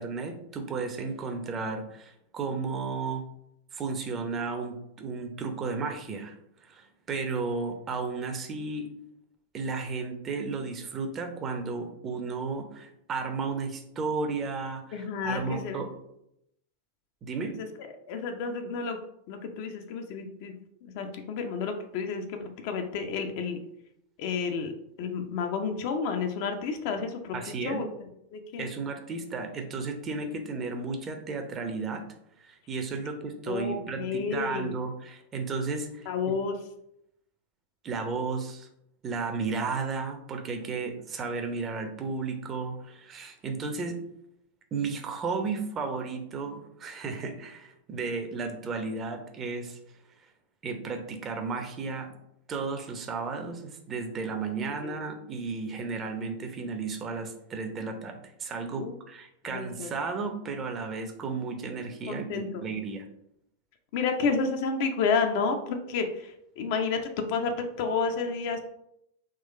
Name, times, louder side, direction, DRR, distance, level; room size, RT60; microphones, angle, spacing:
voice 1, 0.0-3.2 3.7-6.4 6.6-8.9 9.5-15.9 17.2-17.6 27.3-27.8 28.6-32.0 32.4-36.3 37.8-38.7 39.0-44.0 44.7-49.8 50.6-52.1 52.5-63.0, right 4 dB, 25° right, 6 dB, 0.7 m, -33 dB
voice 2, 14.9-15.8 17.6-17.7 18.1-19.0 19.3-20.5 20.8-23.6 24.2-24.7 25.0-27.9 28.3-28.7 33.5-34.8 36.1-36.6 54.8-55.0 58.8-59.0 59.5-59.9 62.1-62.6 63.9-67.5 67.8-68.6, left 5 dB, 50° left, 5 dB, 0.6 m, -30 dB
3.8 x 3.1 x 4.2 m, 0.78 s
figure-of-eight pair, 90°, 0 cm